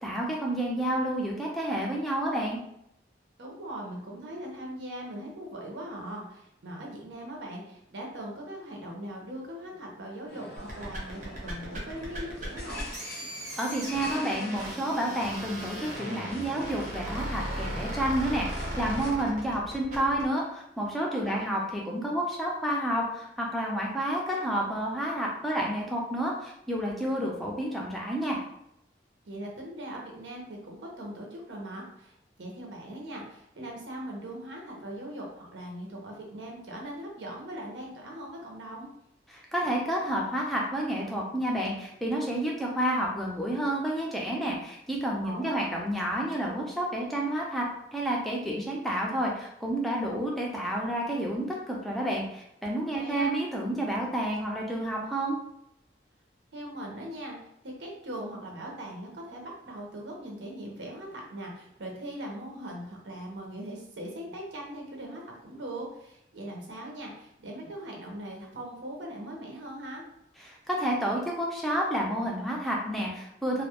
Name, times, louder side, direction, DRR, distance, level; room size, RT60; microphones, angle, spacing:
voice 1, 0.0-2.6 13.6-28.4 39.3-47.7 47.9-55.4 70.4-73.6, right 1 dB, ahead, -3 dB, 0.4 m, -30 dB
voice 2, 3.4-12.8 21.1-21.5 29.2-38.9 45.2-45.7 52.9-53.3 56.5-57.5 57.8-70.0, right 1 dB, 85° right, -1 dB, 0.6 m, -40 dB
sound 1, 10.3-19.1, equal, 65° left, 0.6 m, -43 dB
sound 2, 10.6-20.3, equal, 40° right, 0.6 m, -37 dB
2.2 x 2.0 x 2.8 m, 0.78 s
head